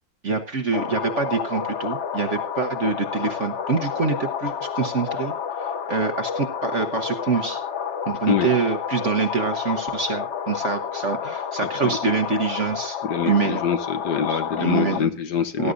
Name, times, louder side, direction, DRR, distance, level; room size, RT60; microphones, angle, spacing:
voice 1, 0.2-5.3 5.6-7.6 8.1-13.0 13.2-13.6 14.3-15.1 15.6-15.7, right 5 dB, 45° right, 7 dB, 1.1 m, -25 dB
sound 1, 0.7-15.0, left 7 dB, 85° left, 0.6 m, -30 dB
voice 2, 11.6-12.0 13.0-15.7, left 7 dB, 60° left, 10 dB, 1.3 m, -25 dB
19.0 x 11.0 x 2.6 m, 0.35 s
omnidirectional pair, 2.2 m